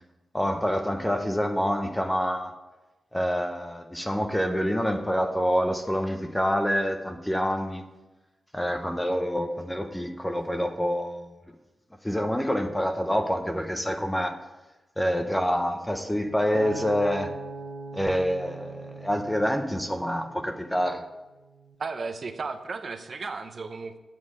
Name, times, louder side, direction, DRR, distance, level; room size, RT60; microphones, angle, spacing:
voice 1, 0.3-2.6 3.1-7.8 8.5-11.3 12.0-14.4 15.0-17.3 17.9-21.0, equal, 5° left, 6 dB, 0.6 m, -27 dB
Acoustic guitar, 16.5-20.9 21.5-21.7, right 4 dB, 75° right, 1.1 m, -39 dB
voice 2, 21.8-24.0, right 4 dB, 40° right, 7 dB, 0.7 m, -34 dB
8.5 x 7.5 x 6.1 m, 1.1 s
wide cardioid pair, 170°, 0 cm